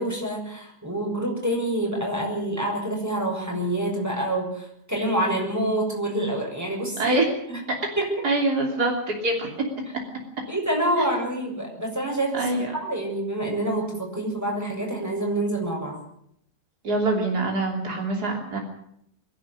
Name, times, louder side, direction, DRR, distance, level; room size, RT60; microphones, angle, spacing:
voice 1, 0.0-7.2 7.5-7.6 8.0-8.1 10.5-16.0, right 1 dB, 10° right, 0 dB, 7.2 m, -27 dB
voice 2, 8.2-8.9 9.2-9.5 11.0-11.1 12.3-12.7 16.8-18.6, right 2 dB, 75° right, 0 dB, 3.8 m, -24 dB
24.0 x 11.5 x 9.8 m, 0.71 s
omnidirectional pair, 1.7 m